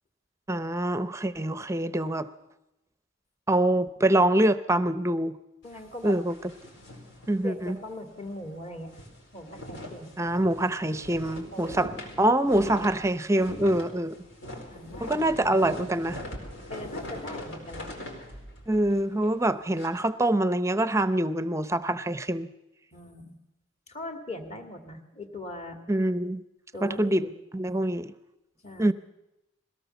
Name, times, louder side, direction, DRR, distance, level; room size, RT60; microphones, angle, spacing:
voice 1, 0.5-2.3 3.5-5.4 6.0-6.3 7.3-7.8 10.2-11.9 12.2-14.2 15.0-16.2 18.7-22.5 25.9-26.4 26.8-27.3 27.5-28.1 28.8-28.9, right 1 dB, 15° right, 13 dB, 0.6 m, -25 dB
sound 1, 5.6-7.9 8.2-8.4 8.7-19.9, left 1 dB, 70° left, 4.5 m, -42 dB
voice 2, 5.6-6.2 7.4-9.0 9.3-10.1 11.5-11.9 14.7-15.3 16.7-17.9 22.9-23.4 23.9-25.8 26.7-27.3 27.7-28.0 28.6-28.9, left 1 dB, 30° left, 5 dB, 2.2 m, -40 dB
21.5 x 17.5 x 7.0 m, 0.93 s
head